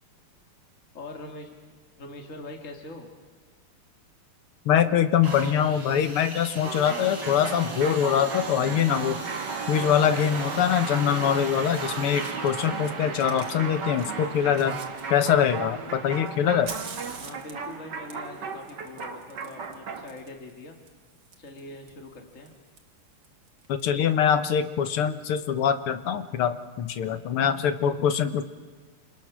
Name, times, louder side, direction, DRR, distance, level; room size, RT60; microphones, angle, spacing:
voice 1, 0.9-1.5 2.0-3.1 17.1-20.8 21.4-22.5, left 2 dB, 35° left, 2 dB, 2.6 m, -42 dB
voice 2, 4.7-9.2 9.7-14.8 15.1-16.7 23.7-28.4, left 8 dB, 90° left, 10 dB, 2.0 m, -23 dB
sound 1, 5.2-14.9 15.6-15.7, right 2 dB, 40° right, 4.4 m, -42 dB
sound 2, 6.6-20.2, right 5 dB, 55° right, 2.0 m, -35 dB
Fire, 11.7-12.9 13.2-15.6 16.1-23.8, right 6 dB, 80° right, 2.7 m, -46 dB
28.0 x 27.5 x 6.3 m, 1.4 s
omnidirectional pair, 2.3 m